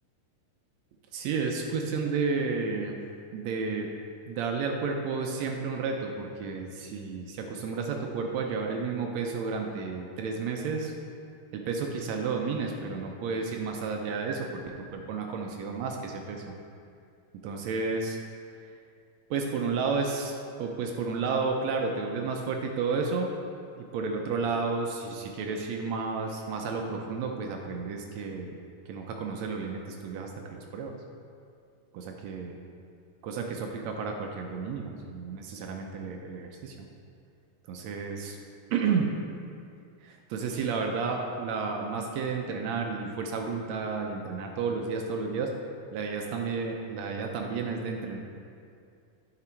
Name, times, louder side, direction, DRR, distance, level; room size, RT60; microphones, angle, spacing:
voice 1, 1.1-3.0 3.3-3.9 4.3-10.9 11.5-16.5 17.4-18.2 19.3-23.3 23.8-28.6 28.9-31.0 31.9-32.6 33.2-36.8 37.7-38.4 38.7-39.1 40.0-45.5 45.9-48.2, right 4 dB, 75° right, 2 dB, 1.7 m, -32 dB
9.7 x 6.0 x 4.4 m, 2.4 s
omnidirectional pair, 3.6 m